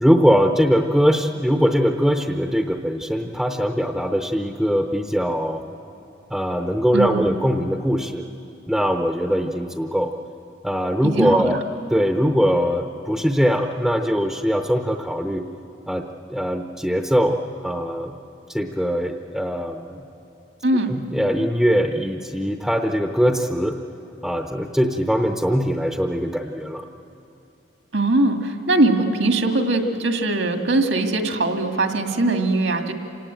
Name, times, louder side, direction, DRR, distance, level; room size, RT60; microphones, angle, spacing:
voice 1, 0.0-5.6 6.3-8.2 8.7-10.1 10.6-11.6 11.9-15.4 15.9-16.0 16.3-18.1 18.5-20.0 20.9-23.8 24.2-26.9, equal, ahead, 4 dB, 0.7 m, -21 dB
voice 2, 11.0-11.5 20.6-20.9 27.9-32.9, right 2 dB, 70° right, 4 dB, 2.0 m, -21 dB
27.5 x 18.5 x 8.9 m, 2.8 s
head